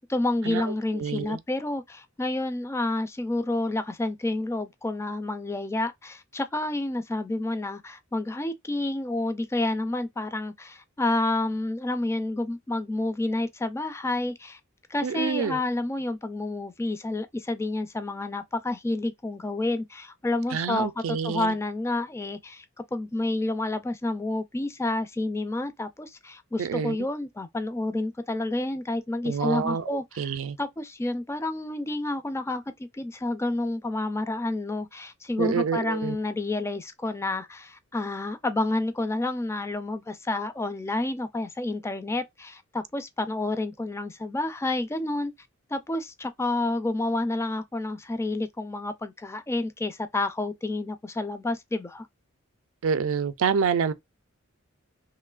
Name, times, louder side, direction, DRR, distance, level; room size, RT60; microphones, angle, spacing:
voice 1, 0.1-14.6 14.9-22.7 22.9-32.6 32.9-45.3 45.7-52.1, left 2 dB, 15° left, 0.3 m, -29 dB
voice 2, 0.9-1.4 15.0-15.6 20.5-21.5 26.6-27.0 29.3-30.6 35.4-36.2 52.8-53.9, right 6 dB, 70° right, 0.4 m, -27 dB
3.0 x 2.7 x 2.3 m
head